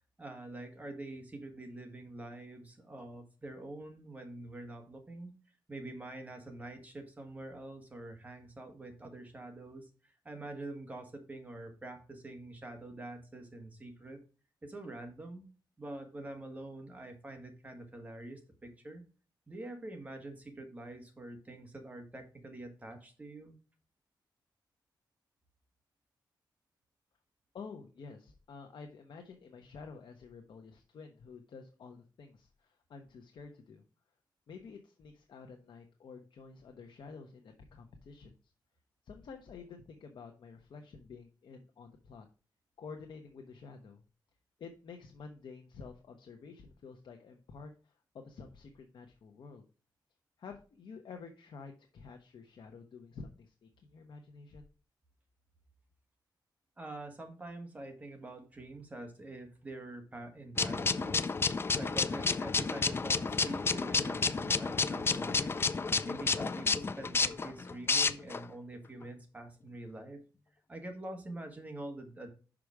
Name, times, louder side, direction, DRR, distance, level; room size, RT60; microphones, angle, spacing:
voice 1, 0.2-5.3 5.7-14.2 14.6-15.5 15.8-19.0 19.5-23.5 56.8-61.3 61.7-65.6 66.0-70.2 70.7-72.3, right 2 dB, 20° right, 4 dB, 1.7 m, -45 dB
voice 2, 27.5-33.8 34.5-38.5 39.0-42.3 42.8-44.0 44.6-49.6 50.4-54.7, left 5 dB, 70° left, 4 dB, 0.9 m, -50 dB
sound 1, 60.6-68.4, left 4 dB, 30° left, 0.4 m, -31 dB
6.0 x 5.0 x 4.8 m, 0.36 s
wide cardioid pair, 125°, 8 cm